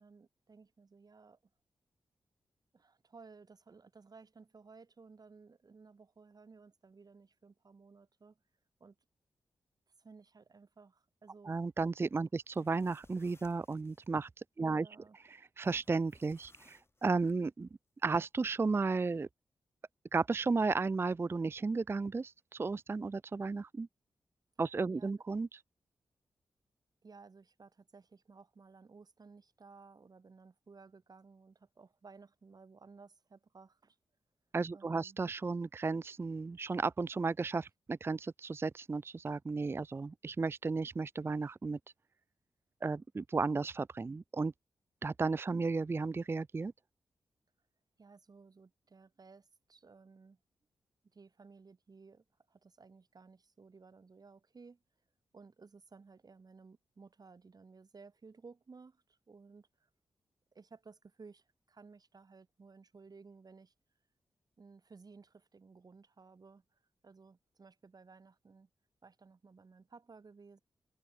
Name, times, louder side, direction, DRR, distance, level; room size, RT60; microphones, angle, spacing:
voice 1, 0.0-1.4 2.7-8.4 8.8-9.0 10.0-11.6 14.6-15.2 24.9-25.1 27.0-34.0 34.7-35.2 48.0-50.4 51.1-54.8 55.3-59.9 60.5-63.7 64.6-68.7 69.0-70.6, right 4 dB, 50° right, 6.3 m, -57 dB
voice 2, 11.4-14.3 14.6-14.9 15.3-17.7 18.0-19.3 20.1-23.9 24.6-25.6 34.5-41.8 42.8-44.5 45.0-46.7, right 4 dB, 30° right, 0.4 m, -34 dB
sound 1, 12.4-14.1 15.6-17.4, left 2 dB, 30° left, 6.9 m, -65 dB
cardioid pair, 45°, 8 cm